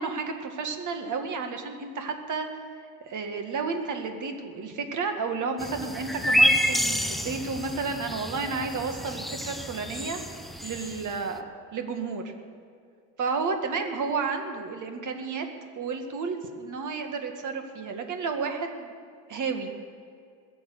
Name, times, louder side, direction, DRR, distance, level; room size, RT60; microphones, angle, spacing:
voice 1, 0.0-2.5 3.1-10.2 10.6-11.4 11.7-12.2 13.2-15.5 15.8-18.9 19.3-19.7, right 4 dB, 40° right, 5 dB, 2.1 m, -31 dB
sound 1, 5.6-11.2, equal, ahead, 0.6 m, -28 dB
21.0 x 7.3 x 6.6 m, 2.2 s
hypercardioid pair, 90°, 47 cm